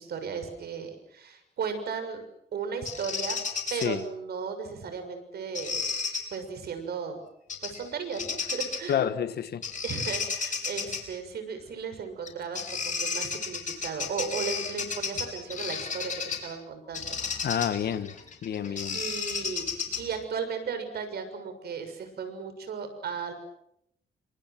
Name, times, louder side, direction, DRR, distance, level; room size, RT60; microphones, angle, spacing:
voice 1, 0.0-2.2 2.5-3.4 3.7-5.9 6.3-7.2 7.6-9.0 9.8-17.2 18.6-19.7 20.0-23.3, right 6 dB, 65° right, 6.7 m, -35 dB
Bird vocalization bird call bird song, 2.9-3.9 5.5-6.2 7.5-7.8 8.1-8.9 9.6-11.0 12.2-12.3 12.6-16.5 16.9-20.2, left 5 dB, 45° left, 5.6 m, -33 dB
voice 2, 8.9-9.6 17.4-18.1 18.4-19.0, left 9 dB, 65° left, 1.8 m, -29 dB
29.5 x 26.0 x 6.2 m
cardioid pair, 115°, 18 cm